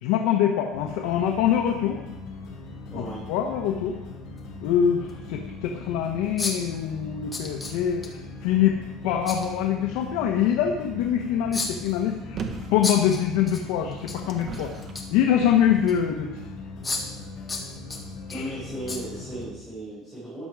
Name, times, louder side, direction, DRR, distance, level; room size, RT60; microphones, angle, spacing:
voice 1, 0.0-2.0 2.9-3.0 3.3-4.0 4.6-8.8 9.0-12.4 12.7-14.7 15.1-16.4 18.3-18.4, left 9 dB, 70° left, 2 dB, 1.3 m, -24 dB
sound 1, 0.7-19.5, left 3 dB, 55° left, 5.3 m, -40 dB
sound 2, 2.4-2.5 4.4-4.5 5.1-5.2 6.4-6.8 7.3-8.1 9.2-9.5 11.5-12.0 12.8-13.6 13.9-14.2 14.5-15.2 15.9-16.0 16.8-17.2 17.5-18.4 18.9-19.0 19.4-19.5, left 3 dB, 10° left, 1.7 m, -32 dB
sound 3, 12.4-12.8 13.6-15.0 15.7-15.8, right 5 dB, 30° right, 1.3 m, -36 dB
voice 2, 18.3-20.4, right 1 dB, 5° right, -10 dB, 5.4 m, -36 dB
14.0 x 11.0 x 4.9 m, 1.0 s
cardioid pair, 170°, 0 cm